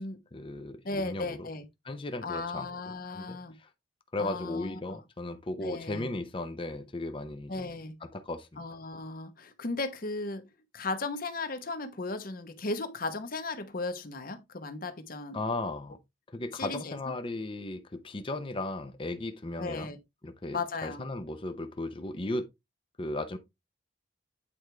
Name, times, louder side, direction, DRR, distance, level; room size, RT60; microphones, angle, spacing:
voice 1, 0.3-1.4 1.8-2.7 3.1-3.4 4.1-8.7 15.3-16.0 16.3-19.9 20.2-22.5 23.0-23.4, left 2 dB, 30° left, 0.7 m, -36 dB
voice 2, 0.8-1.7 2.2-3.5 4.2-5.0 5.6-6.1 7.5-7.9 8.6-10.5 10.7-15.4 16.5-17.0 19.6-20.0 20.5-21.0, left 3 dB, 50° left, 1.1 m, -36 dB
8.7 x 4.6 x 3.3 m
head